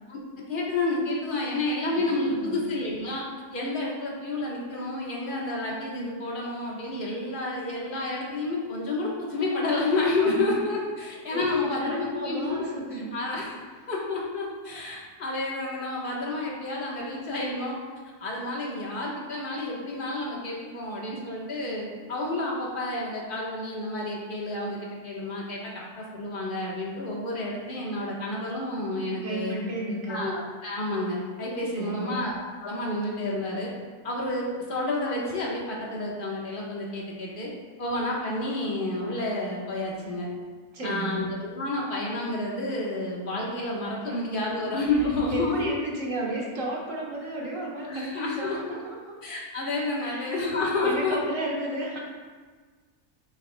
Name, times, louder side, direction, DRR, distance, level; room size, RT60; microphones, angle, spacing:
voice 1, 0.5-3.2 3.5-13.5 13.9-17.8 18.2-29.6 30.1-32.3 32.6-33.7 34.0-37.5 37.8-40.3 40.8-45.8 47.9-48.8 49.2-51.2, left 2 dB, 35° left, -4 dB, 1.4 m, -30 dB
voice 2, 1.9-2.7 10.2-10.5 11.3-13.2 29.1-30.3 31.7-32.2 40.7-41.3 44.1-44.3 44.6-49.0 50.0-50.5 50.8-52.0, right 1 dB, 55° right, -3 dB, 1.8 m, -34 dB
9.1 x 6.4 x 2.3 m, 1.5 s
omnidirectional pair, 1.7 m